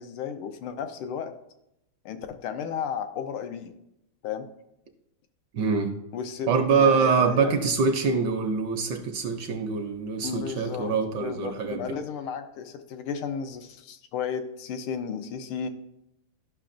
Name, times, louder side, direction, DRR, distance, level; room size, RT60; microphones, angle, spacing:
voice 1, 0.0-1.3 2.0-3.7 4.2-4.5 6.1-7.5 10.2-15.7, left 7 dB, 90° left, 7 dB, 1.6 m, -34 dB
voice 2, 5.5-5.9 6.5-11.8, right 5 dB, 70° right, 5 dB, 1.1 m, -24 dB
12.0 x 5.8 x 2.5 m, 0.83 s
omnidirectional pair, 2.3 m